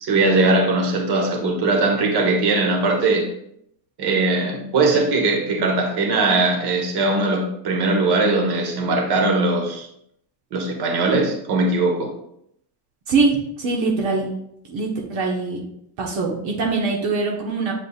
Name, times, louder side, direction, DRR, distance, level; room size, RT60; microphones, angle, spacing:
voice 1, 0.0-3.3 4.0-9.9 10.5-12.1, right 2 dB, 55° right, 2 dB, 1.5 m, -20 dB
voice 2, 13.6-14.3 14.7-15.6 16.0-17.7, right 3 dB, 75° right, -1 dB, 1.4 m, -22 dB
8.1 x 5.1 x 2.4 m, 0.74 s
cardioid pair, 120°, 46 cm